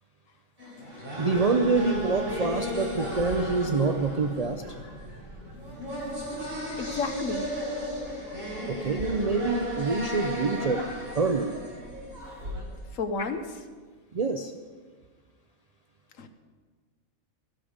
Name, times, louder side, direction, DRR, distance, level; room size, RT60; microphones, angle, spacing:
sound 1, 0.6-12.5, equal, 35° right, 4.3 m, -35 dB
voice 1, 1.2-4.6 8.7-10.9 11.1-11.6 14.1-14.5, right 4 dB, 50° right, 5 dB, 0.4 m, -26 dB
sound 2, 1.3-12.6, right 1 dB, 75° right, 3.5 m, -43 dB
voice 2, 6.8-7.4 12.9-13.4 16.2-16.3, left 4 dB, 70° left, 8 dB, 1.3 m, -31 dB
14.0 x 12.5 x 5.0 m, 1.5 s
omnidirectional pair, 1.4 m